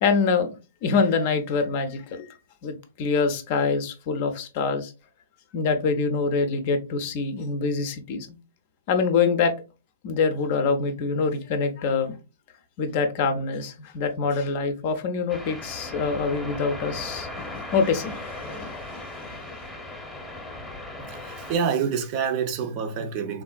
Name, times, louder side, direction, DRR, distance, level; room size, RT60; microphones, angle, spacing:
voice 1, 0.0-0.6 0.8-4.9 5.5-8.4 8.9-9.5 10.0-12.2 12.8-19.6, left 4 dB, 45° left, 0.5 m, -25 dB
sound 1, 15.3-21.6, left 2 dB, 10° left, 0.8 m, -37 dB
voice 2, 21.0-23.4, right 6 dB, 40° right, 0.5 m, -27 dB
3.5 x 2.4 x 2.3 m
figure-of-eight pair, 115°, 0 cm